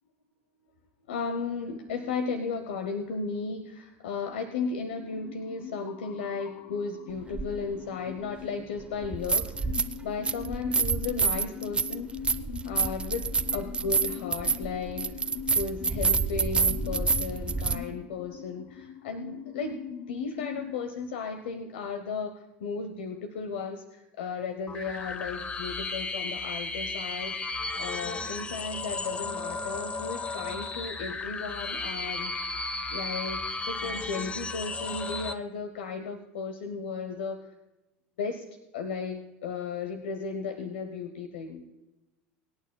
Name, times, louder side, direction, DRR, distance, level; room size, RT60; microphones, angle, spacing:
voice 1, 1.1-9.7 10.0-12.1 12.6-13.2 13.5-15.2 15.5-19.8 20.1-27.4 27.8-32.3 32.9-37.5 38.2-38.4 38.7-41.7, left 4 dB, 85° left, 8 dB, 0.9 m, -35 dB
sound 1, 4.9-20.8, left 9 dB, 65° left, 0.6 m, -42 dB
sound 2, 7.3-7.5 9.0-10.0 10.2-17.8, right 4 dB, 20° right, 0.7 m, -27 dB
sound 3, 24.7-35.3, left 3 dB, 20° left, 0.8 m, -34 dB
24.5 x 8.9 x 2.2 m, 1.0 s
hypercardioid pair, 95°, 6 cm